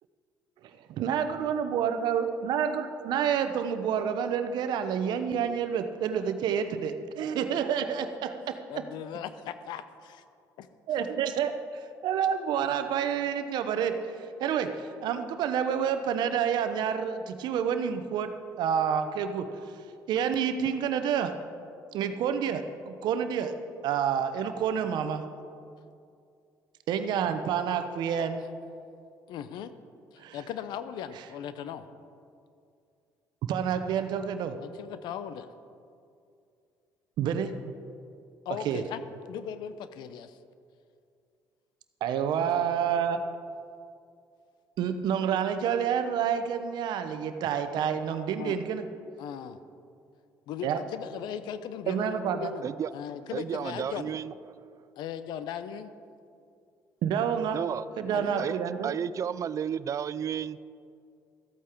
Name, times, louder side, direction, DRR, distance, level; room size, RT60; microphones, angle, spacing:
voice 1, 1.0-8.6 10.9-18.3 18.6-19.5 20.1-21.3 21.9-23.5 23.8-25.2 26.9-28.4 30.2-30.4 33.5-34.5 37.2-37.5 38.6-38.8 42.0-43.2 44.8-48.8 50.6-50.8 51.9-52.5 57.0-57.6 58.0-58.9, right 8 dB, 75° right, 9 dB, 0.8 m, -28 dB
voice 2, 8.7-10.2 10.6-10.7 29.3-29.7 30.1-31.9 34.6-35.5 38.5-39.0 39.3-40.4 42.4-42.7 48.4-48.6 49.2-49.6 50.5-52.6 52.9-54.1 55.0-55.9 58.1-58.5, left 9 dB, 75° left, 12 dB, 0.6 m, -38 dB
voice 3, 53.3-54.3 57.5-60.6, right 8 dB, 45° right, 17 dB, 0.3 m, -33 dB
13.5 x 8.4 x 4.5 m, 2.4 s
supercardioid pair, 80°, 8 cm